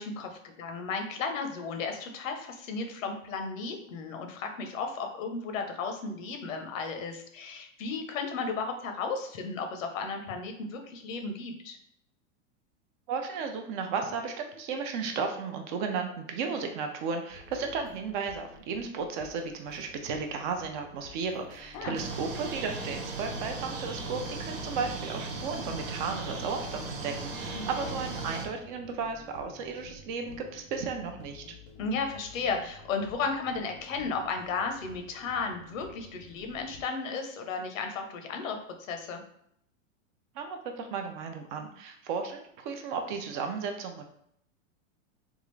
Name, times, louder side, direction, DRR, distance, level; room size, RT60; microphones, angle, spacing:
voice 1, 0.0-11.8 21.7-21.9 27.5-28.0 31.8-38.6 38.9-39.2, left 4 dB, 75° left, 5 dB, 0.8 m, -34 dB
voice 2, 13.1-31.4 40.3-44.0, right 5 dB, 40° right, 4 dB, 0.5 m, -34 dB
sound 1, 17.3-36.8, left 4 dB, 30° left, 0.4 m, -52 dB
sound 2, 21.9-28.5, right 3 dB, 75° right, 1.0 m, -37 dB
3.6 x 2.4 x 3.1 m, 0.71 s
supercardioid pair, 140°, 39 cm